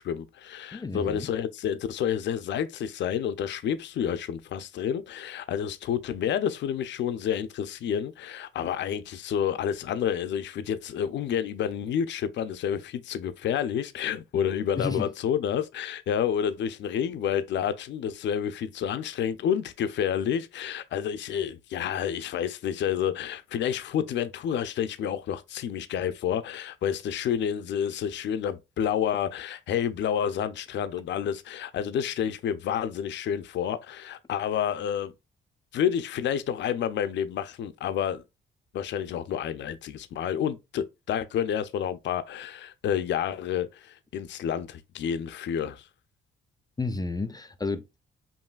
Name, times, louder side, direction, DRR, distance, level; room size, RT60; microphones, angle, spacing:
voice 1, 0.0-35.1 35.7-38.2 38.7-45.9, left 9 dB, 65° left, 0.5 m, -29 dB
voice 2, 0.7-1.3 14.8-15.1 46.8-47.8, left 3 dB, 20° left, 0.4 m, -31 dB
5.5 x 2.6 x 2.4 m
cardioid pair, 90°, 20 cm